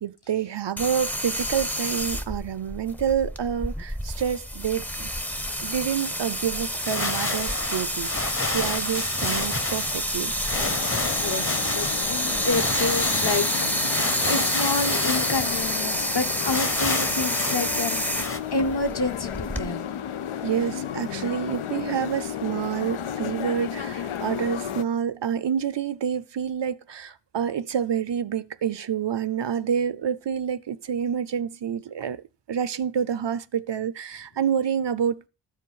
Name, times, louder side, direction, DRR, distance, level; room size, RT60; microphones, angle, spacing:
voice 1, 0.0-5.1 5.6-10.3 20.4-35.3, right 8 dB, 60° right, 0.6 m, -28 dB
sound 1, 0.8-19.7, equal, 5° left, 0.6 m, -28 dB
sound 2, 6.8-18.4, left 2 dB, 25° left, 1.0 m, -31 dB
sound 3, 10.5-24.8, left 9 dB, 90° left, 0.6 m, -33 dB
voice 2, 11.1-11.5 11.7-19.9, left 3 dB, 50° left, 1.2 m, -29 dB
12.0 x 5.2 x 5.6 m
wide cardioid pair, 55°, 48 cm